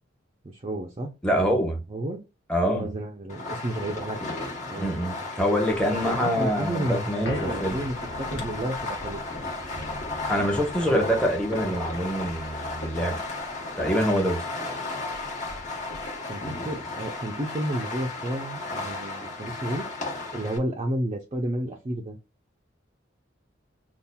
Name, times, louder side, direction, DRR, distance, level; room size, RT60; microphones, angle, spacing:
voice 1, 0.4-1.1 1.9-2.2 2.7-4.3 4.7-4.9 6.0-9.3 10.8-11.0 11.6-11.7 16.3-19.9 20.3-22.2, right 1 dB, 30° right, 0.5 m, -31 dB
voice 2, 1.2-1.8 2.5-2.9 4.8-7.7 10.3-13.2 13.8-14.4, equal, 5° left, 0.9 m, -25 dB
Fireworks, 3.3-20.6, left 2 dB, 40° left, 1.1 m, -34 dB
sound 1, 5.6-14.3 14.7-14.8 15.0-16.4 16.9-17.0, left 1 dB, 65° left, 1.1 m, -41 dB
5.5 x 2.4 x 2.2 m
head